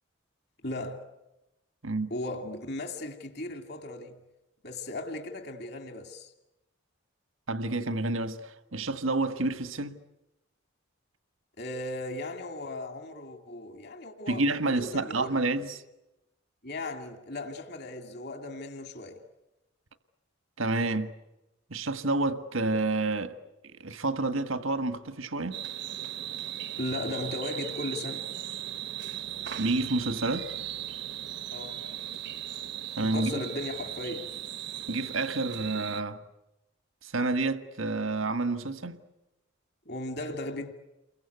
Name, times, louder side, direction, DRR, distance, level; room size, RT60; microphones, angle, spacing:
voice 1, 0.6-1.0 2.1-4.2 4.6-6.3 11.6-15.4 16.6-19.2 26.8-28.3 31.5-31.8 33.0-34.3 39.9-40.7, left 2 dB, 55° left, 2.6 m, -37 dB
voice 2, 7.5-10.0 14.3-15.8 20.6-21.1 21.7-23.4 23.6-25.6 29.5-30.5 32.9-33.4 34.9-36.2 37.0-39.0, right 2 dB, 85° right, 1.6 m, -29 dB
sound 1, 25.5-36.0, right 11 dB, 55° right, 0.9 m, -37 dB
29.5 x 23.0 x 8.2 m
head